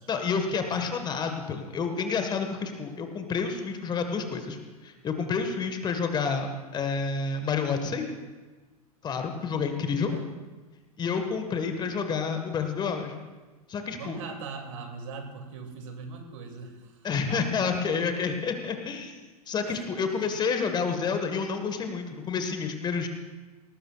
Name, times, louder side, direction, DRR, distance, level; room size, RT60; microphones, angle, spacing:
voice 1, 0.1-8.0 9.0-10.1 11.0-13.1 13.7-14.2 17.0-19.2 19.5-23.1, left 5 dB, 20° left, 6 dB, 1.6 m, -29 dB
voice 2, 14.0-17.8 19.7-20.4, right 4 dB, 55° right, 4 dB, 2.6 m, -42 dB
19.5 x 19.0 x 2.4 m, 1.3 s
figure-of-eight pair, 90°, 20 cm